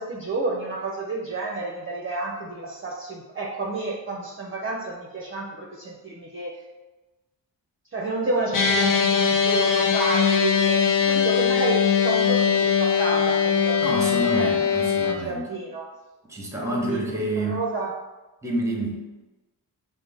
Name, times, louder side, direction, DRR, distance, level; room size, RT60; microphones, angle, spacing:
voice 1, 0.0-6.6 7.9-14.5 15.0-15.9 16.6-17.0 17.4-17.9, right 3 dB, 30° right, -3 dB, 0.6 m, -30 dB
sound 1, 8.5-15.1, left 7 dB, 50° left, 0.5 m, -21 dB
voice 2, 13.8-15.5 16.3-17.6 18.4-19.0, right 1 dB, 5° right, -1 dB, 0.9 m, -28 dB
5.0 x 2.1 x 3.5 m, 1.1 s
wide cardioid pair, 85°, 41 cm